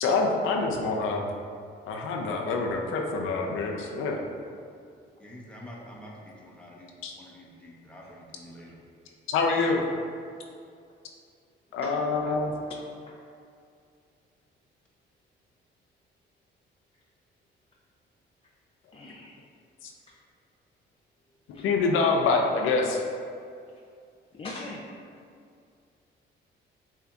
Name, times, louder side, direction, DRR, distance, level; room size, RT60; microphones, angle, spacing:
voice 1, 0.0-1.3 1.8-4.2 7.0-7.1 9.3-9.8 11.7-12.5 19.8-19.9 21.6-23.0, left 4 dB, 90° left, 1 dB, 0.5 m, -26 dB
voice 2, 5.2-8.8 9.6-9.8, equal, 5° left, -4 dB, 0.9 m, -47 dB
voice 3, 18.9-19.4 20.1-20.2 21.5-21.6 24.3-25.0, left 2 dB, 30° left, -2 dB, 0.4 m, -41 dB
6.8 x 2.8 x 2.4 m, 2.3 s
cardioid pair, 90°, 20 cm